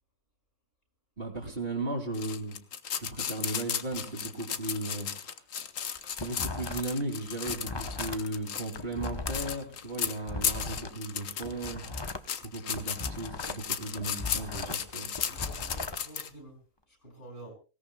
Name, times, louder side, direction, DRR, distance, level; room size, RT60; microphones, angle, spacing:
voice 1, 1.2-2.6 3.0-5.1 6.2-11.8 12.4-15.1, right 2 dB, 40° right, -5 dB, 2.9 m, -36 dB
sound 1, 2.1-16.3, left 8 dB, 70° left, 1.4 m, -35 dB
voice 2, 4.7-5.1 15.2-16.6 16.9-17.5, right 1 dB, 45° left, 5 dB, 6.0 m, -49 dB
Flipping a Book, 5.8-7.0 7.3-10.9 11.3-13.7 13.9-16.0, left 3 dB, 20° left, 0.8 m, -39 dB
25.0 x 17.0 x 2.3 m, 0.35 s
omnidirectional pair, 1.4 m